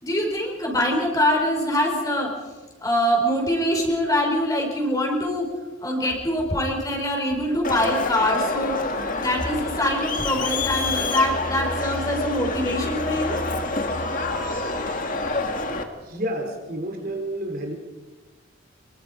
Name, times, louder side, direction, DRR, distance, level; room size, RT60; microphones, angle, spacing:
voice 1, 0.0-2.3 2.8-8.8 9.1-13.4, left 1 dB, 15° left, 1 dB, 4.8 m, -24 dB
Crowd, 7.6-15.8, left 3 dB, 40° left, 2.0 m, -27 dB
voice 2, 15.5-17.7, right 1 dB, 45° right, 2 dB, 3.7 m, -31 dB
26.0 x 23.5 x 5.2 m, 1.2 s
head